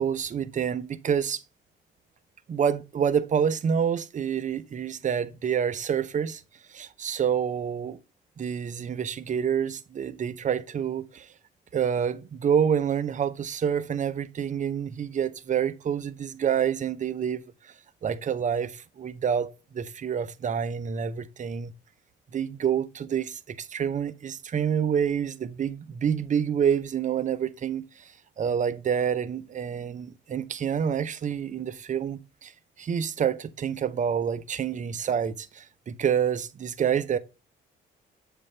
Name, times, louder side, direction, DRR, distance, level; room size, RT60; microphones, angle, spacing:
voice 1, 0.0-1.4 2.5-6.4 6.7-8.0 8.4-11.3 11.7-17.7 18.0-21.7 22.3-32.5 32.8-37.2, right 8 dB, 40° right, 0.5 m, -28 dB
7.5 x 3.5 x 4.2 m
cardioid pair, 90°, 20 cm